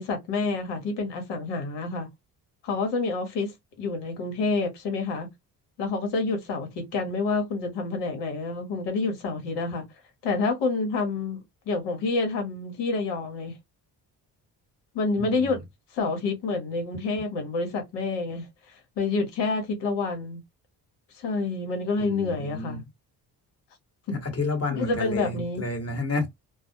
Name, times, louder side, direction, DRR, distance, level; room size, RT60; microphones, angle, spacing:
voice 1, 0.0-2.1 2.6-5.3 5.8-9.8 10.2-11.4 11.7-13.5 14.9-15.6 15.9-20.4 21.1-22.8 24.1-24.2 24.7-25.6, left 3 dB, 85° left, 1.0 m, -28 dB
voice 2, 15.2-15.6 22.0-22.8 24.1-26.3, left 2 dB, 35° left, 1.2 m, -30 dB
2.3 x 2.0 x 2.7 m
supercardioid pair, 70°, 42 cm